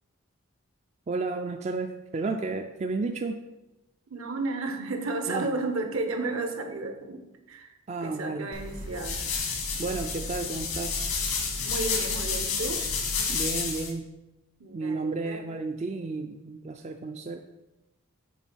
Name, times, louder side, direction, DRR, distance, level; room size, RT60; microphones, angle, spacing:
voice 1, 1.1-3.4 5.3-5.5 7.9-8.5 9.8-11.0 13.3-14.1 14.7-17.4, right 3 dB, 30° right, 6 dB, 0.3 m, -32 dB
voice 2, 4.1-7.7 8.0-9.2 11.6-12.9 14.6-15.4, right 3 dB, 70° right, 6 dB, 1.0 m, -33 dB
sound 1, 8.5-13.9, left 5 dB, 90° left, 1.6 m, -30 dB
7.2 x 3.5 x 6.1 m, 0.97 s
head